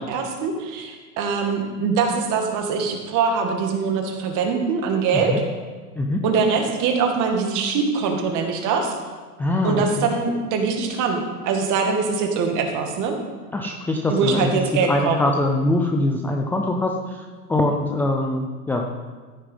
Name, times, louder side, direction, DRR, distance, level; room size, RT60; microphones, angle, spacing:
voice 1, 0.0-5.4 6.2-9.0 9.6-13.2 14.1-15.3, right 5 dB, 40° right, 3 dB, 2.2 m, -23 dB
voice 2, 9.4-10.1 13.5-14.6 14.9-18.9, left 2 dB, 5° left, 2 dB, 0.4 m, -23 dB
14.5 x 6.8 x 5.6 m, 1.4 s
hypercardioid pair, 125°, 47 cm